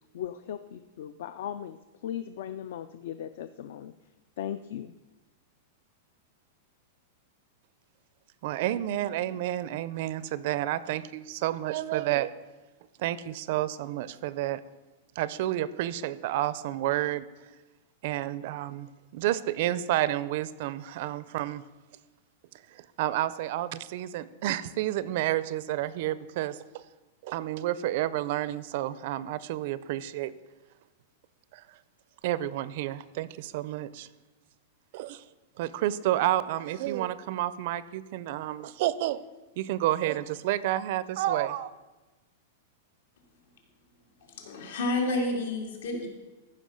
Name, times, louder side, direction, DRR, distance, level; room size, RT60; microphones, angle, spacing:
voice 1, 0.1-3.9 4.4-4.9, left 10 dB, 55° left, 12 dB, 0.4 m, -38 dB
voice 2, 8.4-12.3 13.0-14.6 15.2-17.3 18.0-21.6 22.7-26.8 27.2-30.3 31.5-31.8 32.2-34.1 34.9-35.2 35.6-39.2 39.6-41.7, right 14 dB, 45° right, 17 dB, 0.4 m, -30 dB
voice 3, 44.2-46.1, left 2 dB, 80° left, 3 dB, 2.5 m, -30 dB
14.5 x 5.4 x 6.4 m, 1.2 s
supercardioid pair, 175°, 0 cm